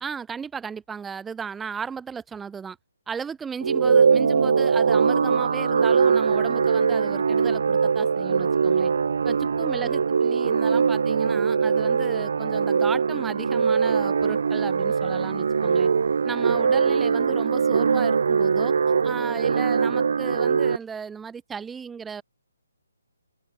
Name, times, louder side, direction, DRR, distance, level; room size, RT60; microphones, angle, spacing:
voice 1, 0.0-2.8 3.1-8.9 9.2-15.9 16.2-18.7 19.0-22.2, right 6 dB, 5° right, 0.7 m, -35 dB
sound 1, 3.6-20.8, right 5 dB, 50° right, 0.3 m, -22 dB
sound 2, 13.5-19.7, left 2 dB, 70° left, 7.6 m, -53 dB
figure-of-eight pair, 140°, 0 cm